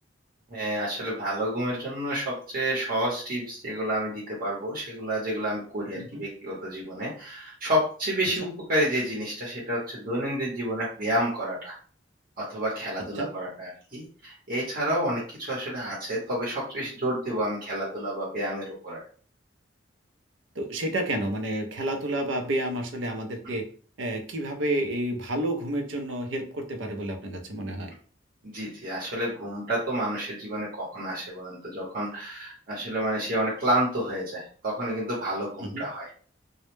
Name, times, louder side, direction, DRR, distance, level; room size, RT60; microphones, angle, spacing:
voice 1, 0.5-11.8 12.4-19.0 28.4-36.1, right 1 dB, 50° right, -5 dB, 0.8 m, -30 dB
voice 2, 20.6-23.6 24.0-27.9 35.6-35.8, right 1 dB, 75° right, 6 dB, 0.5 m, -30 dB
2.1 x 2.0 x 3.0 m, 0.42 s
head